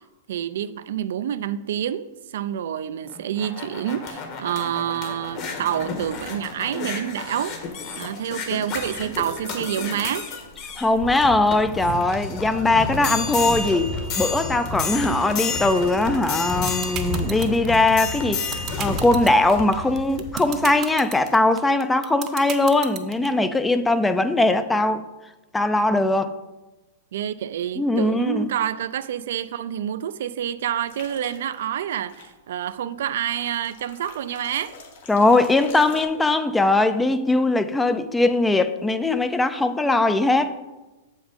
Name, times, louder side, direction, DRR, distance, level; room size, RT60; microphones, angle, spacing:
voice 1, 0.3-7.6 8.0-10.3 27.1-34.7, right 10 dB, 70° right, 0.4 m, -28 dB
sound 1, 3.0-20.7 21.3-21.4, left 4 dB, 45° left, 1.5 m, -31 dB
voice 2, 10.8-25.0 25.5-26.3 27.8-28.5 35.1-40.6, left 2 dB, 10° left, 0.4 m, -20 dB
sound 2, 16.3-23.3, right 10 dB, 35° right, 0.7 m, -32 dB
sound 3, 30.9-31.6 32.1-32.3 33.2-36.0, left 4 dB, 70° left, 1.4 m, -44 dB
7.1 x 5.3 x 5.1 m
hypercardioid pair, 130°, 0 cm